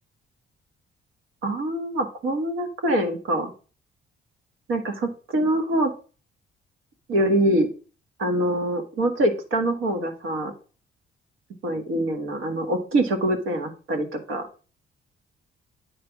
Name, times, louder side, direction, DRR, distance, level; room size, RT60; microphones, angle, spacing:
voice 1, 1.4-3.5 4.7-5.9 7.1-7.7 8.2-10.5 11.6-14.5, right 1 dB, 85° right, 5 dB, 1.6 m, -24 dB
8.7 x 3.4 x 5.8 m, 0.37 s
cardioid pair, 90°, 20 cm